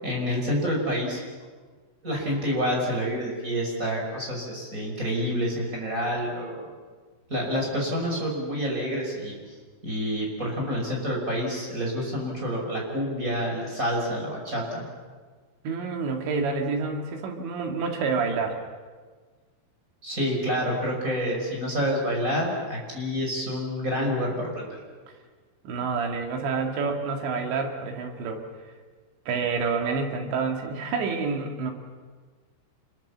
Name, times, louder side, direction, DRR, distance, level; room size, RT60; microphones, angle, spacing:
voice 1, 0.0-1.2 2.0-6.6 7.3-9.4 9.8-14.8 20.0-24.7, equal, 15° right, -1 dB, 6.2 m, -28 dB
voice 2, 15.6-18.6 25.6-28.4 29.3-31.7, right 4 dB, 70° right, 3 dB, 4.2 m, -28 dB
27.5 x 22.5 x 7.4 m, 1.5 s
omnidirectional pair, 5.4 m